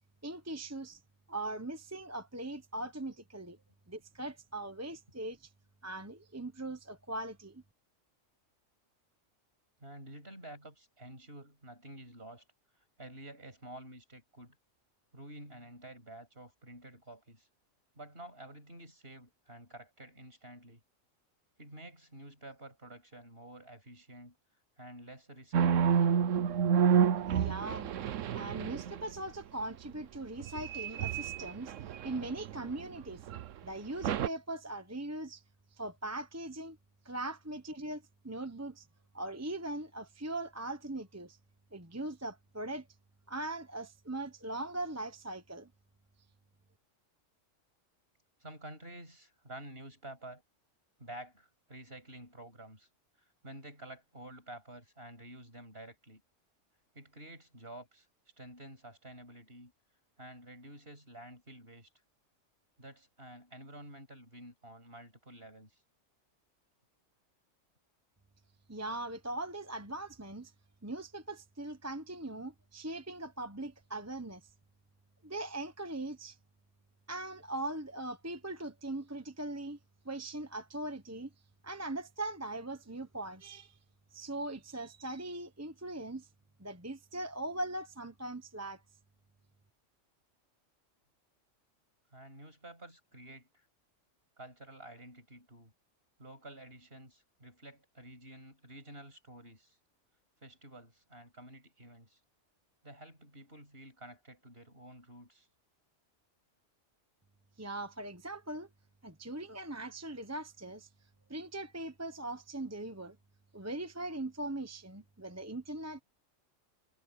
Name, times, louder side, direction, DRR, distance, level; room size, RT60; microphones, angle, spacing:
voice 1, 0.2-1.0 1.3-3.6 3.9-5.5 5.8-7.6 27.3-27.9 28.3-33.3 33.6-35.4 35.7-36.8 37.0-38.9 39.1-41.4 41.7-42.9 43.3-45.7 68.7-70.5 70.8-74.5 75.2-76.4 77.1-79.8 80.0-81.3 81.6-83.8 84.1-86.3 86.6-88.8 107.6-108.7 109.0-110.9 111.3-113.2 113.5-116.0, right 2 dB, 15° right, 1.1 m, -40 dB
voice 2, 9.8-12.4 13.0-14.6 15.1-17.5 17.9-20.8 21.6-24.4 24.8-25.8 48.4-50.4 51.0-52.9 53.4-56.2 56.9-58.1 58.4-59.7 60.2-61.9 62.8-65.8 92.1-93.7 94.4-95.7 96.2-99.8 100.4-102.2 102.8-105.5, right 1 dB, 50° right, 7.8 m, -50 dB
sound 1, 25.5-29.1 30.4-32.7 33.3-33.5 34.0-34.3, right 7 dB, 75° right, 1.1 m, -29 dB
omnidirectional pair, 1.3 m